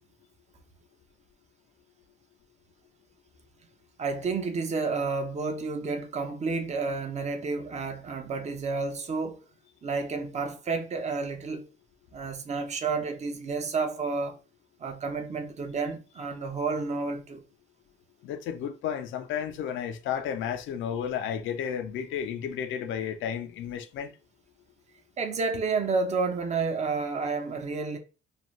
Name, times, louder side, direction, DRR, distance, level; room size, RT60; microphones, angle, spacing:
voice 1, 4.0-9.4 9.8-11.6 12.1-14.4 14.8-17.4 25.2-28.0, right 4 dB, 35° right, 0.5 m, -30 dB
voice 2, 18.2-24.1, left 8 dB, 80° left, 0.5 m, -32 dB
2.6 x 2.3 x 3.0 m
cardioid pair, 90°, 20 cm